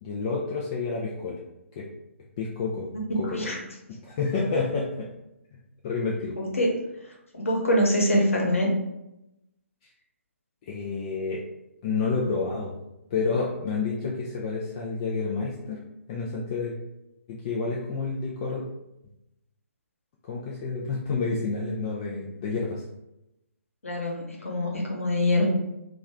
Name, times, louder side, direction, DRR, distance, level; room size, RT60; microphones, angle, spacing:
voice 1, 0.0-1.4 1.8-1.9 2.4-3.5 4.0-5.1 5.8-6.4 10.6-11.4 11.8-12.7 13.1-16.7 17.3-18.7 20.3-22.8, left 4 dB, 25° left, -3 dB, 0.4 m, -29 dB
voice 2, 6.4-6.7 7.3-8.7 23.8-25.4, left 1 dB, 70° left, -2 dB, 1.1 m, -24 dB
3.0 x 2.4 x 3.5 m, 0.90 s
figure-of-eight pair, 135°, 8 cm